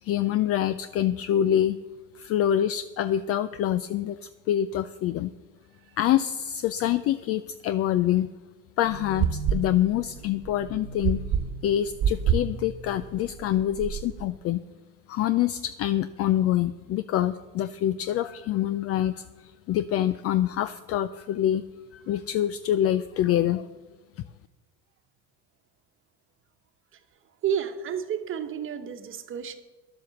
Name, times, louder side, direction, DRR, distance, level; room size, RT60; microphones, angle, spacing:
voice 1, 0.0-1.8 2.1-5.3 6.0-8.3 8.8-11.2 11.6-14.6 15.1-21.6 21.9-23.7, left 11 dB, 45° left, 14 dB, 0.4 m, -26 dB
Extra. Corazon Heartbeat, 8.8-14.3, right 7 dB, 55° right, 1.3 m, -29 dB
voice 2, 27.4-29.6, right 8 dB, 35° right, 8 dB, 1.2 m, -31 dB
11.5 x 7.8 x 7.0 m, 1.2 s
supercardioid pair, 120°, 34 cm